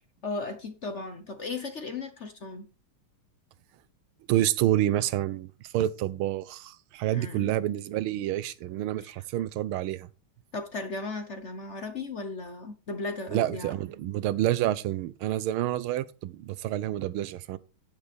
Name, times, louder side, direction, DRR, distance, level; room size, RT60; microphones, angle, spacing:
voice 1, 0.2-2.7 7.1-7.5 9.0-9.2 10.5-13.7, left 3 dB, 45° left, 1.0 m, -36 dB
voice 2, 4.3-10.1 13.3-17.6, right 13 dB, 85° right, 1.5 m, -28 dB
10.5 x 9.6 x 3.4 m
omnidirectional pair, 2.3 m